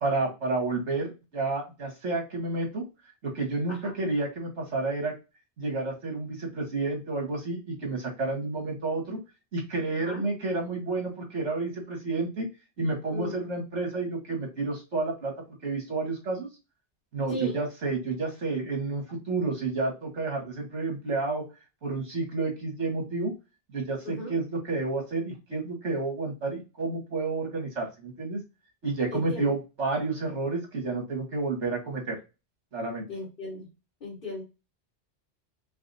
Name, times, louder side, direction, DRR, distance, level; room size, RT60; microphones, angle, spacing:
voice 1, 0.0-2.8 3.2-5.1 5.6-9.2 9.5-12.5 12.8-15.3 15.6-16.5 17.1-21.4 21.8-23.3 23.7-24.0 24.3-28.4 28.8-32.2 32.7-33.0, right 3 dB, 80° right, 0 dB, 2.0 m, -30 dB
voice 2, 9.9-10.3 13.1-13.4 17.3-17.6 24.0-24.4 29.1-29.5 33.1-33.7 34.0-34.4, left 1 dB, 50° left, -6 dB, 1.8 m, -36 dB
5.6 x 2.1 x 4.0 m, 0.28 s
omnidirectional pair, 1.2 m